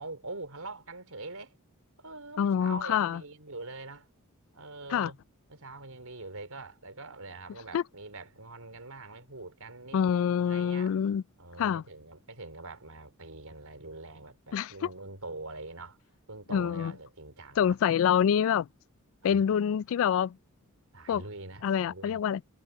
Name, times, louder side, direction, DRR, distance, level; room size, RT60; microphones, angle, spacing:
voice 1, 0.0-1.6 2.0-4.1 4.5-5.2 5.5-10.9 11.4-16.0 16.3-17.7 19.2-19.4 20.9-22.2, right 3 dB, 80° right, 4.5 m, -44 dB
voice 2, 2.4-3.2 4.9-5.1 7.7-7.8 9.9-11.2 11.6-11.8 14.5-14.9 16.5-16.9 17.6-18.7 19.2-20.4 21.1-21.2 21.6-22.4, left 8 dB, 65° left, 0.3 m, -26 dB
head